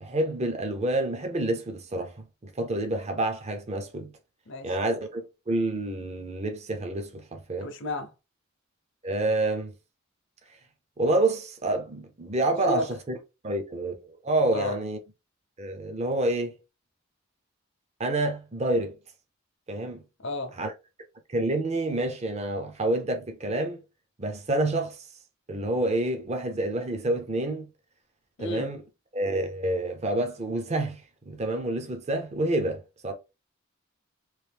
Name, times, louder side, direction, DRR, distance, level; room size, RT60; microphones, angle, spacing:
voice 1, 0.0-4.1 4.6-7.7 9.0-9.7 11.0-12.9 13.4-15.0 15.6-16.6 18.0-19.0 19.7-20.0 20.6-20.7 21.3-23.8 24.2-25.0 25.5-27.6 28.4-28.8 29.1-33.1, right 2 dB, 30° right, 0.6 m, -28 dB
voice 2, 4.5-4.8 7.6-8.1 12.7-12.9 14.5-14.8 20.2-20.6 28.4-28.7, left 2 dB, 60° left, 0.7 m, -32 dB
3.2 x 2.6 x 3.4 m
head